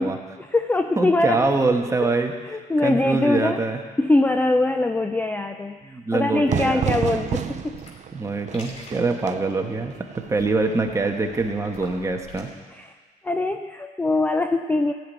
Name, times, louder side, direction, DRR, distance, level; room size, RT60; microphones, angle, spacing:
voice 1, 0.0-1.5 2.0-2.1 2.5-3.6 4.0-7.8 12.7-12.9 13.2-14.9, left 2 dB, 10° left, 7 dB, 0.5 m, -23 dB
voice 2, 1.0-2.3 2.8-3.8 5.9-6.9 8.1-12.5, right 3 dB, 20° right, 3 dB, 1.4 m, -24 dB
Fire / Fireworks, 6.5-12.0, right 9 dB, 45° right, 0.7 m, -31 dB
sound 1, 7.1-12.4, left 1 dB, 40° left, 2.8 m, -47 dB
15.5 x 6.0 x 9.4 m, 1.5 s
cardioid pair, 110°, 17 cm